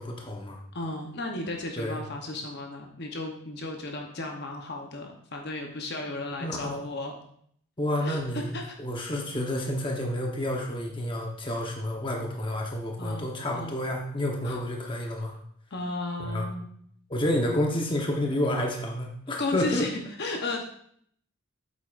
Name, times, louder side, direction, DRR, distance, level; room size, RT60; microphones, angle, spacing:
voice 1, 0.0-0.6 1.8-2.0 6.1-6.8 7.8-8.5 8.8-15.3 16.2-16.5 17.1-19.8, left 1 dB, 20° left, 0 dB, 1.0 m, -30 dB
voice 2, 0.7-7.1 8.0-8.7 13.0-13.8 14.4-14.6 15.7-16.6 19.4-19.9 20.2-20.6, left 2 dB, 50° left, 2 dB, 0.9 m, -34 dB
8.3 x 8.1 x 2.5 m, 0.65 s
head